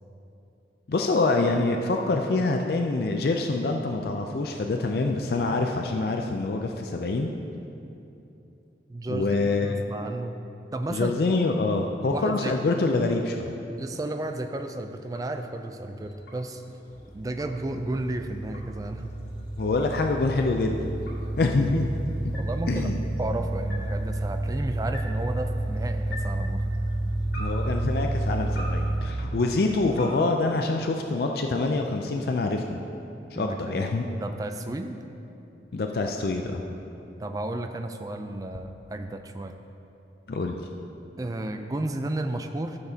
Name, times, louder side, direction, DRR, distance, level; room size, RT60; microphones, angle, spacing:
voice 1, 0.9-7.3 9.1-9.8 10.9-13.5 19.6-20.9 21.4-21.9 22.2-22.3 22.7-23.0 27.4-32.8 33.3-34.1 35.7-36.6 40.3-40.6, left 3 dB, 55° left, 3 dB, 0.4 m, -26 dB
voice 2, 8.9-10.4 10.7-11.1 12.1-12.5 13.8-16.6 17.1-19.1 22.3-26.7 33.4-35.0 37.2-39.6 41.2-42.8, right 2 dB, 20° right, 6 dB, 0.3 m, -33 dB
sound 1, 13.5-31.3, left 1 dB, 90° left, 2.1 m, -48 dB
sound 2, 16.9-29.0, right 1 dB, 10° left, 1.6 m, -30 dB
13.5 x 6.9 x 2.8 m, 2.8 s
head